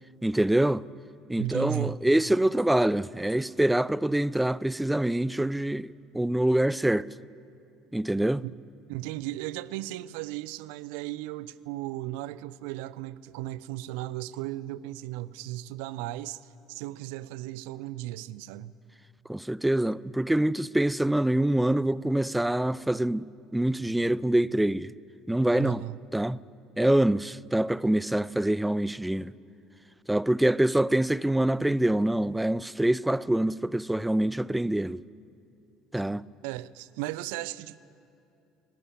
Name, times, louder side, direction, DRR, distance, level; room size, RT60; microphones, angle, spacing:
voice 1, 0.2-0.8 1.3-7.1 7.9-8.4 19.3-23.2 23.5-24.9 25.3-25.8 26.1-26.4 26.8-29.3 30.1-35.0 35.9-36.3, right 1 dB, 5° right, 0.4 m, -25 dB
voice 2, 1.4-2.0 8.4-8.6 8.9-16.4 16.7-18.7 25.6-26.0 36.4-37.8, right 16 dB, 60° right, 0.5 m, -36 dB
18.5 x 18.0 x 9.9 m
figure-of-eight pair, 60°, 0 cm